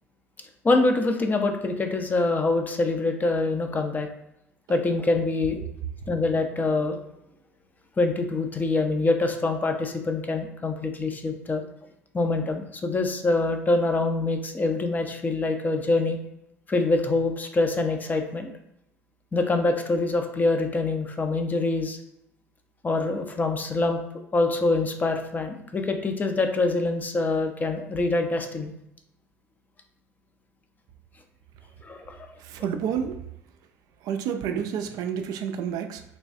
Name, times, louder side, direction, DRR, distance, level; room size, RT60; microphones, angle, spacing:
voice 1, 0.6-4.1 4.7-5.6 6.1-7.0 8.0-11.6 12.1-16.2 16.7-18.5 19.3-22.0 22.8-24.0 24.3-28.7 31.8-32.2, left 2 dB, 20° left, 5 dB, 0.6 m, -25 dB
voice 2, 32.4-33.2 34.0-36.0, right 8 dB, 50° right, 7 dB, 0.3 m, -29 dB
3.3 x 3.0 x 2.6 m, 0.79 s
figure-of-eight pair, 60°, 8 cm